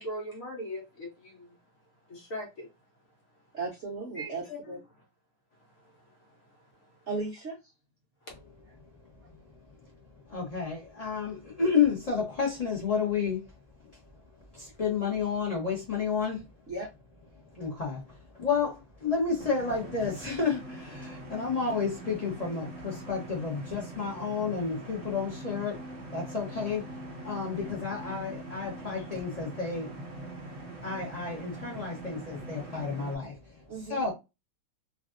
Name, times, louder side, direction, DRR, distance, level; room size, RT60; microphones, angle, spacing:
voice 1, 0.0-1.5 2.1-2.7 4.2-4.6 8.3-8.4, equal, 55° left, 1.1 m, -39 dB
voice 2, 3.5-4.8 7.1-7.6 16.7-16.9 33.7-34.1, right 3 dB, 70° right, 0.6 m, -36 dB
voice 3, 10.3-13.4 14.5-16.4 17.5-25.8 26.1-27.0 27.2-29.9 30.8-33.5 33.9-34.1, left 5 dB, 85° left, 0.3 m, -31 dB
sound 1, 19.4-33.2, right 1 dB, 50° right, 1.3 m, -43 dB
3.3 x 2.4 x 2.4 m
omnidirectional pair, 2.3 m